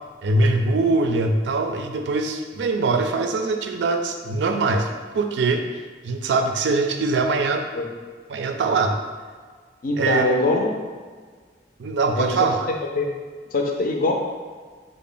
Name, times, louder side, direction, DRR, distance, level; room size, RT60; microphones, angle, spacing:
voice 1, 0.2-5.6 6.0-7.6 8.3-9.0 10.0-10.3 11.8-12.6, right 3 dB, 75° right, 5 dB, 0.3 m, -22 dB
voice 2, 9.8-10.7 12.2-12.3 13.0-13.1 13.5-14.1, left 2 dB, 50° left, 1 dB, 0.5 m, -22 dB
3.8 x 2.0 x 3.7 m, 1.5 s
head